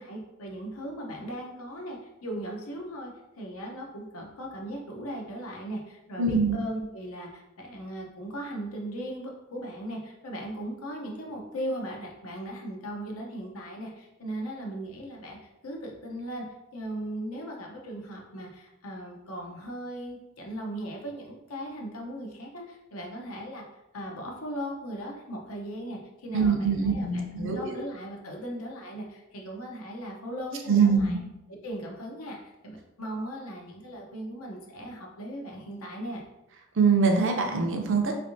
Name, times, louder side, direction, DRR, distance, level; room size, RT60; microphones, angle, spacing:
voice 1, 0.0-15.4 15.6-16.4 16.7-23.6 23.9-31.2 31.5-36.2, right 1 dB, 85° left, 0 dB, 0.8 m, -38 dB
voice 2, 6.2-6.6 26.3-27.8 30.7-31.2 36.8-38.1, right 5 dB, 65° right, 2 dB, 0.6 m, -23 dB
3.4 x 3.3 x 2.6 m, 0.94 s
head